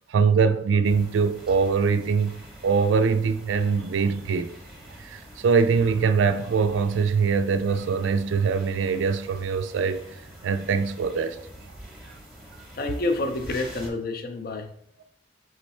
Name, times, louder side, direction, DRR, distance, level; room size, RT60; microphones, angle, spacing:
voice 1, 0.1-4.5 5.0-10.0 10.4-11.4, right 5 dB, 70° right, 0.4 m, -23 dB
sound 1, 0.8-13.9, right 1 dB, 5° right, 0.9 m, -45 dB
voice 2, 12.8-14.7, left 2 dB, 50° left, 0.5 m, -28 dB
3.8 x 3.2 x 4.2 m
head